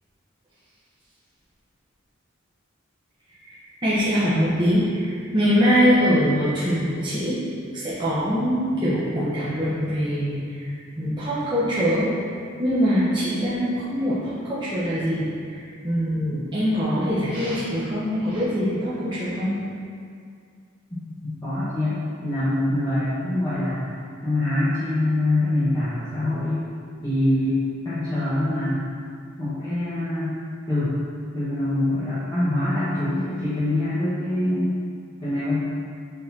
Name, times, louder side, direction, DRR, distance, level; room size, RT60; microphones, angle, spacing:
voice 1, 3.4-7.4 7.7-10.7 11.0-12.1 12.6-19.5, equal, 25° right, -11 dB, 1.3 m, -23 dB
voice 2, 20.9-26.6 27.0-28.8 29.4-30.3 30.7-30.9 31.3-34.7 35.2-35.6, left 1 dB, 20° left, -14 dB, 1.6 m, -24 dB
7.7 x 6.7 x 3.0 m, 2.2 s
head